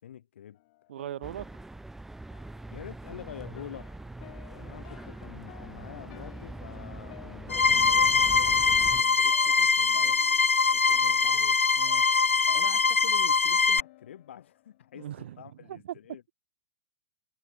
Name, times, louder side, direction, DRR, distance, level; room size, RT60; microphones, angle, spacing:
voice 1, 0.0-0.6 2.7-4.0 4.3-10.2 10.9-11.6 12.5-16.2, left 10 dB, 65° left, 3.7 m, -46 dB
sound 1, 0.5-15.4, left 21 dB, 50° left, 7.7 m, -55 dB
voice 2, 0.9-1.5 10.7-11.4 11.8-12.0 14.9-16.0, right 11 dB, 60° right, 6.5 m, -41 dB
sound 2, 1.2-9.0, right 2 dB, 5° right, 0.6 m, -42 dB
sound 3, 7.5-13.8, left 4 dB, 85° left, 0.7 m, -23 dB
figure-of-eight pair, 105°, 7 cm